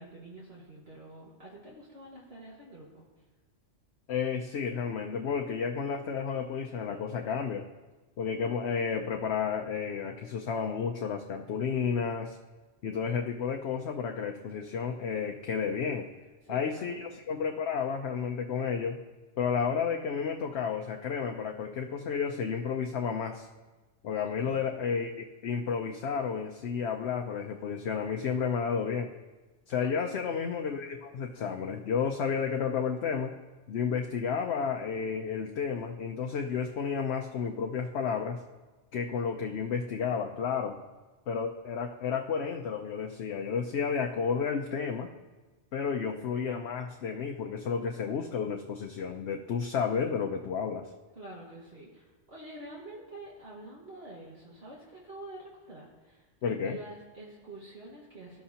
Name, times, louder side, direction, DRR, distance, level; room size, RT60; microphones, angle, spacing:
voice 1, 0.0-3.1 16.4-17.0 24.4-24.7 29.8-30.2 51.2-56.3 56.6-58.4, right 2 dB, 55° right, -5 dB, 2.0 m, -47 dB
voice 2, 4.1-7.7 8.2-12.4 12.8-16.1 16.5-19.0 19.4-23.5 24.0-29.1 29.7-33.3 33.7-38.4 38.9-40.8 41.3-45.1 45.7-50.9 56.4-56.8, left 6 dB, 65° left, 3 dB, 0.9 m, -31 dB
18.5 x 11.5 x 2.9 m, 1.2 s
omnidirectional pair, 1.3 m